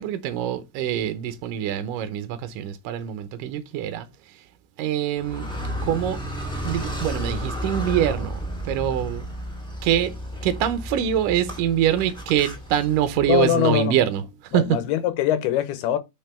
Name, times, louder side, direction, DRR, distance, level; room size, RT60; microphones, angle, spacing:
voice 1, 0.0-4.1 4.8-5.5 5.8-6.2 6.6-9.3 9.8-10.1 10.4-14.8, right 10 dB, 75° right, 2.2 m, -24 dB
Car, 5.2-13.4, equal, ahead, 1.2 m, -32 dB
voice 2, 13.3-14.0 14.5-16.0, left 11 dB, 90° left, 2.8 m, -22 dB
6.0 x 5.5 x 4.3 m
omnidirectional pair, 4.5 m